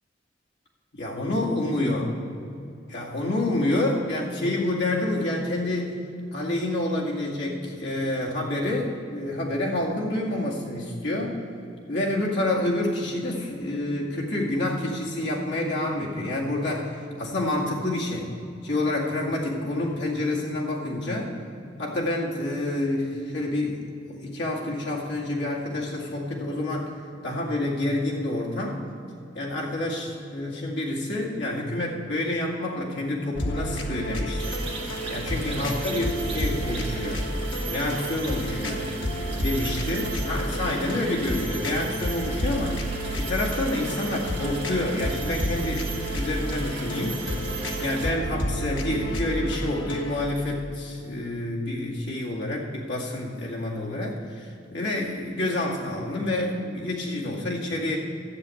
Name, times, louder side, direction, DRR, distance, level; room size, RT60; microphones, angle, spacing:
voice 1, 0.9-2.1 2.9-6.0 6.3-11.4 11.9-18.3 18.6-21.3 21.8-26.9 27.2-28.8 29.3-34.6 35.1-37.3 37.7-38.9 39.4-42.9 43.2-47.5 47.8-58.0, left 1 dB, 70° left, -4 dB, 2.2 m, -28 dB
sound 1, 33.3-50.2, equal, 90° left, 1.3 m, -31 dB
sound 2, 34.4-48.1, right 3 dB, 30° right, 1.4 m, -37 dB
13.0 x 7.0 x 8.4 m, 2.5 s
head